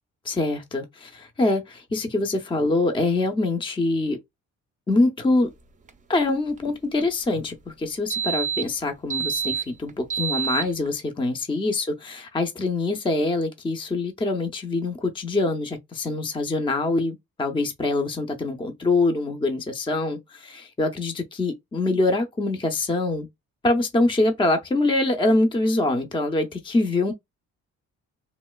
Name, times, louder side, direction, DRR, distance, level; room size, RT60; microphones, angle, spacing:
voice 1, 0.2-4.2 4.9-5.5 6.1-23.3 23.6-27.1, left 2 dB, 15° left, 0.6 m, -24 dB
sound 1, 5.9-6.0 6.1-6.2 6.6-6.7 7.0-7.2 8.1-8.7 9.1-10.9, right 8 dB, 25° right, 0.5 m, -27 dB
3.1 x 2.9 x 2.3 m
cardioid pair, 90°, 30 cm